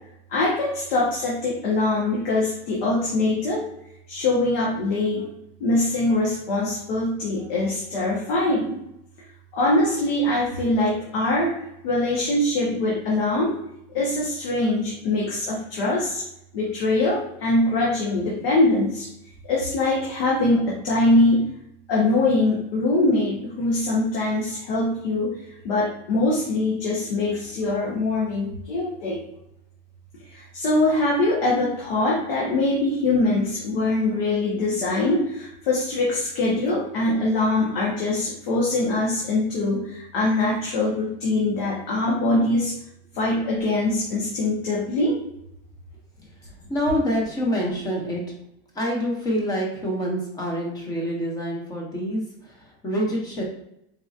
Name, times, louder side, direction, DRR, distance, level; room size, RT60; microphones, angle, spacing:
voice 1, 0.3-3.7 4.1-5.3 5.6-8.8 9.5-13.6 13.9-16.2 16.5-19.1 19.4-21.5 21.9-29.2 30.3-42.7 43.1-45.2, left 2 dB, 70° left, -4 dB, 1.0 m, -23 dB
voice 2, 46.7-48.3 48.7-53.4, equal, 10° left, -2 dB, 0.7 m, -26 dB
3.9 x 2.7 x 2.4 m, 0.80 s
supercardioid pair, 160°, 29 cm